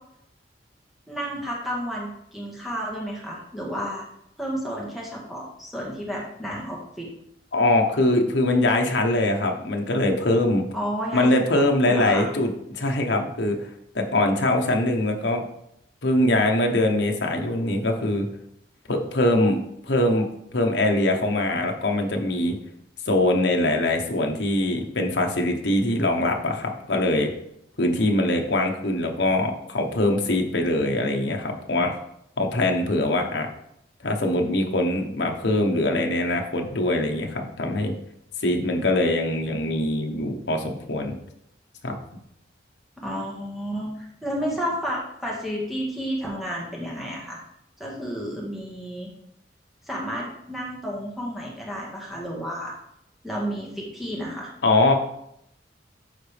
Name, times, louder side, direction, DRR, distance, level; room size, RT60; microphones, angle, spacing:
voice 1, 1.1-4.0 4.4-7.1 10.7-12.3 43.0-47.4 47.8-49.1 49.8-52.7 53.2-54.5, equal, ahead, -5 dB, 1.7 m, -31 dB
voice 2, 7.5-10.6 11.1-13.6 13.9-15.4 16.0-18.3 18.9-19.6 19.8-20.3 20.5-22.6 23.1-27.3 27.8-32.0 32.4-33.5 34.0-37.9 38.4-41.2 41.8-42.0 54.6-54.9, left 1 dB, 65° left, 3 dB, 1.0 m, -22 dB
12.0 x 4.0 x 3.4 m, 0.77 s
head